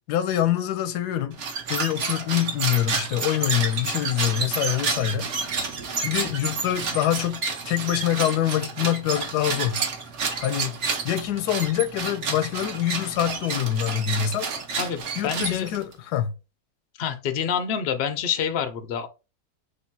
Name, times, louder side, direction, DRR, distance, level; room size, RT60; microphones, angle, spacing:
voice 1, 0.1-1.3 1.7-5.3 6.0-9.8 10.4-10.7 11.0-14.5 15.2-16.3, left 11 dB, 85° left, 1.2 m, -25 dB
sound 1, 1.3-15.9, right 5 dB, 55° right, 1.0 m, -30 dB
voice 2, 14.8-15.7 17.0-19.1, left 7 dB, 65° left, 0.6 m, -27 dB
3.3 x 3.0 x 4.5 m
omnidirectional pair, 1.7 m